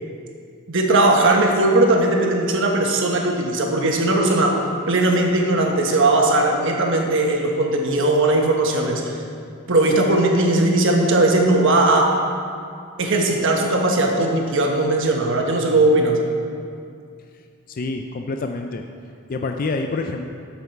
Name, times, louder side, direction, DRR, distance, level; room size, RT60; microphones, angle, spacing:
voice 1, 0.7-9.2 9.7-12.2 13.0-16.2, right 2 dB, 55° right, 1 dB, 1.2 m, -18 dB
voice 2, 17.7-18.9 19.3-20.3, left 3 dB, 40° left, 4 dB, 0.4 m, -27 dB
13.0 x 5.8 x 4.6 m, 2.4 s
head